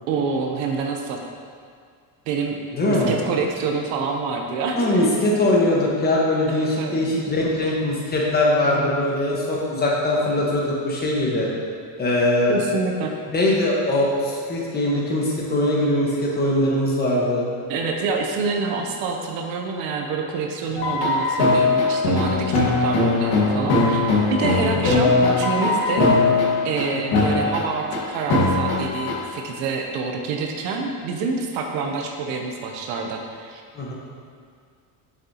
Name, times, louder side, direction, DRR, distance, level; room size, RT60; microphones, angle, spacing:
voice 1, 0.1-1.2 2.3-5.1 6.5-7.0 8.6-9.0 12.5-13.1 17.7-26.1 26.6-33.6, right 4 dB, 90° right, 2 dB, 0.8 m, -27 dB
voice 2, 2.7-3.1 4.7-11.5 12.0-12.6 13.3-17.5 22.6-22.7 24.6-24.8 27.1-27.2 33.7-33.9, left 1 dB, 20° left, -4 dB, 1.3 m, -21 dB
sound 1, 20.8-26.8 27.1-28.0 28.3-29.1, left 3 dB, 60° left, 1.7 m, -20 dB
6.8 x 6.5 x 2.8 m, 2.2 s
cardioid pair, 135°, 43 cm